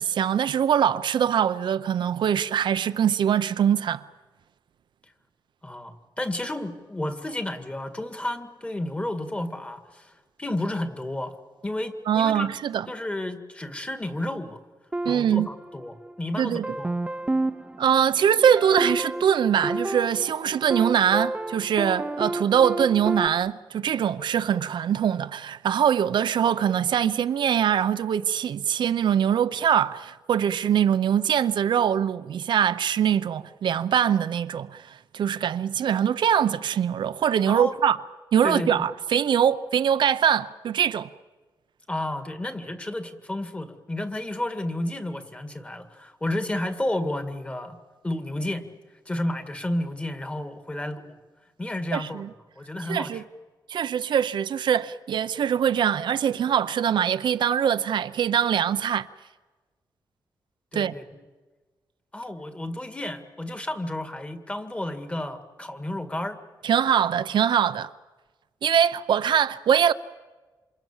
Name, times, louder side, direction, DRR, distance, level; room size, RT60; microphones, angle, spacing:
voice 1, 0.0-4.0 12.1-12.9 15.0-15.5 16.4-16.6 17.8-38.0 38.3-41.1 51.9-52.3 52.9-53.2 53.7-59.1 60.7-60.9 66.6-67.9 68.6-69.9, right 9 dB, 80° right, 0.7 m, -23 dB
voice 2, 5.6-11.3 11.6-12.6 12.9-14.6 15.0-16.9 37.5-37.7 38.4-38.8 41.9-47.8 48.0-48.7 49.1-51.2 51.6-52.2 52.6-53.2 60.7-61.2 62.1-66.4, left 1 dB, 15° left, 2.0 m, -31 dB
sound 1, 14.9-16.2 16.6-23.3, right 2 dB, 15° right, 0.8 m, -31 dB
27.5 x 26.5 x 7.3 m
wide cardioid pair, 130°, 8 cm